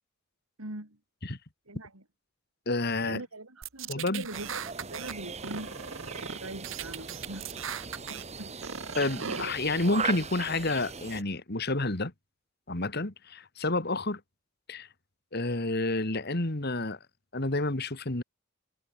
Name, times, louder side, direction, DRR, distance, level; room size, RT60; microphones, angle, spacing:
voice 1, 0.6-1.0 1.7-2.0 3.0-7.6 8.1-8.7 9.3-9.5, right 2 dB, 85° right, 4.6 m, -42 dB
voice 2, 2.7-3.2 3.9-4.3 9.0-12.1 12.7-14.2 14.7-14.9 15.3-17.0 17.3-18.2, left 2 dB, 45° left, 2.1 m, -29 dB
sound 1, 3.6-5.1 5.4-6.4 6.6-8.2 8.6-9.5, right 7 dB, 65° right, 1.4 m, -38 dB
sound 2, 4.3-11.2, right 5 dB, 30° right, 2.2 m, -39 dB
head